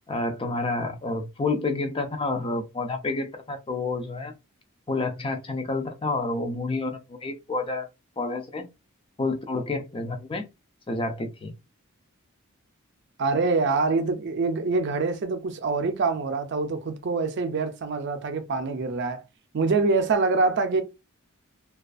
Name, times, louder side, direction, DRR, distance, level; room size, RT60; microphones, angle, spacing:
voice 1, 0.1-4.3 4.9-7.9 8.2-8.6 9.2-10.4 10.9-11.5, left 3 dB, 25° left, 0.4 m, -29 dB
voice 2, 13.2-19.2 19.5-20.8, right 3 dB, 55° right, 0.4 m, -25 dB
2.4 x 2.3 x 2.3 m
head